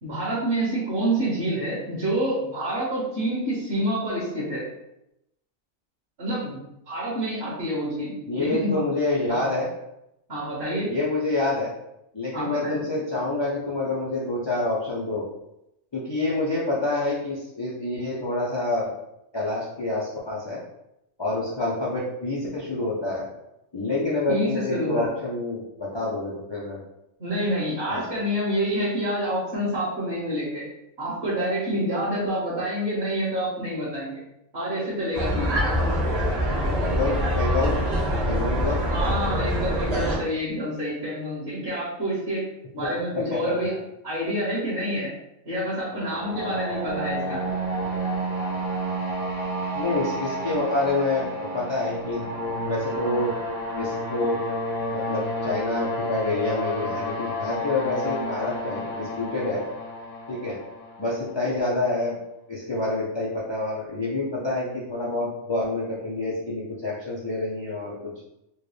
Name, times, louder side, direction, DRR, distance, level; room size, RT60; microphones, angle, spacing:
voice 1, 0.0-4.6 6.2-6.6 6.9-8.8 9.3-9.4 10.3-10.9 12.3-12.8 23.9-25.1 27.2-30.6 31.0-34.2 34.5-35.5 38.6-42.4 42.7-43.7 44.0-45.1 45.4-47.4 61.4-61.5, right 1 dB, 55° right, -9 dB, 1.7 m, -27 dB
voice 2, 8.3-9.7 10.9-11.7 12.1-15.2 15.9-18.9 19.3-20.6 21.2-23.3 23.7-26.8 27.9-28.1 36.8-37.8 38.2-38.8 43.1-43.4 49.7-52.2 52.6-53.3 53.8-54.4 54.9-59.6 60.3-60.6 61.0-62.2 62.5-68.1, left 2 dB, 45° left, -7 dB, 0.3 m, -27 dB
sound 1, 35.1-40.2, equal, 30° right, 1.0 m, -24 dB
sound 2, 45.9-61.7, equal, 90° left, 1.5 m, -30 dB
4.4 x 2.2 x 3.2 m, 0.84 s
omnidirectional pair, 1.4 m